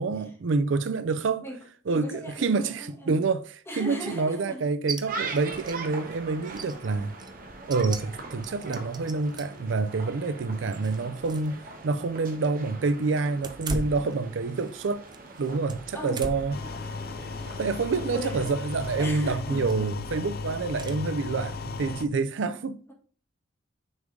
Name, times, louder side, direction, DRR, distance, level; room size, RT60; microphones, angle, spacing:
voice 1, 0.0-1.5 1.9-7.1 7.7-15.1 15.4-16.6 17.6-22.8, right 4 dB, 70° right, 0.4 m, -27 dB
voice 2, 1.9-3.2 3.7-4.6 15.9-16.3 16.6-16.8 18.1-18.6 19.0-19.9, equal, 15° left, 1.7 m, -39 dB
sound 1, 4.9-5.0 5.3-5.8 6.1-6.2 6.5-9.6 10.2-11.5 11.8-11.9 13.3-14.8 15.1-16.6 17.1-17.4 18.8-19.1 19.6-20.0 20.8-21.0, right 3 dB, 20° right, 0.5 m, -39 dB
sound 2, 5.1-19.0, right 3 dB, 45° right, 1.2 m, -42 dB
sound 3, 16.5-22.1, left 4 dB, 50° left, 0.4 m, -35 dB
6.1 x 3.8 x 5.1 m
head